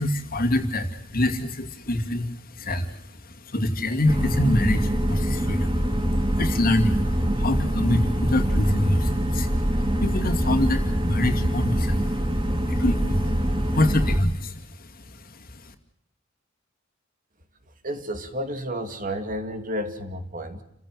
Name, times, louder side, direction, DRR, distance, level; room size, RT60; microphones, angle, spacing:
voice 1, 0.0-15.6, left 1 dB, 50° left, 7 dB, 2.4 m, -26 dB
sound 1, 4.1-14.2, equal, 25° right, 2.5 m, -24 dB
voice 2, 17.8-20.6, equal, 45° right, 8 dB, 2.5 m, -31 dB
30.0 x 15.5 x 7.6 m, 0.79 s
head